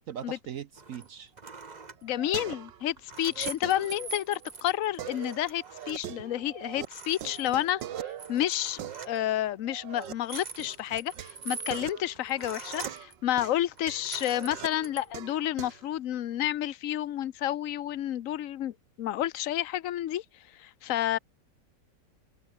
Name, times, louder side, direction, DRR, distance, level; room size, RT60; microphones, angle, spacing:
voice 1, 0.1-1.3, right 9 dB, 60° right, 1.0 m, -40 dB
sound 1, 0.8-1.1 1.4-2.0 2.7-6.0 6.4-6.5 6.7-7.8 8.2-9.2 9.9-13.1 13.7-15.1, right 4 dB, 25° right, 1.3 m, -43 dB
sound 2, 1.5-2.9 3.2-4.5 5.0-6.9 7.1-10.1 10.6-15.9, right 11 dB, 85° right, 1.7 m, -42 dB
voice 2, 2.0-7.8 8.3-8.8 9.1-20.2 20.6-21.2, left 12 dB, 55° left, 1.0 m, -30 dB
omnidirectional pair, 1.9 m